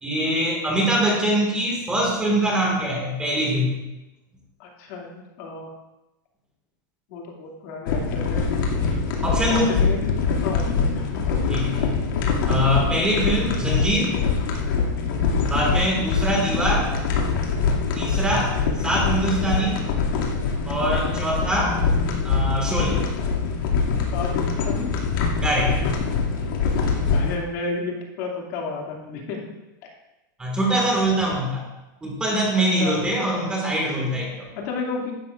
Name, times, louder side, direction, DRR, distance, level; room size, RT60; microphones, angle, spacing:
voice 1, 0.0-3.8 9.2-9.7 11.5-11.9 12.2-14.1 15.5-16.9 18.0-19.8 20.7-21.8 22.2-23.0 25.4-25.8 30.4-31.7 32.0-34.5, right 1 dB, 10° right, -2 dB, 1.8 m, -23 dB
voice 2, 4.6-5.7 7.1-8.5 9.5-10.1 10.4-11.2 24.1-24.9 27.1-29.4 29.8-29.9 32.6-33.0 34.6-35.2, left 4 dB, 45° left, -1 dB, 2.4 m, -32 dB
sound 1, 7.9-27.4, left 5 dB, 75° left, 2.4 m, -24 dB
15.5 x 11.5 x 2.5 m, 0.97 s
supercardioid pair, 175°, 11 cm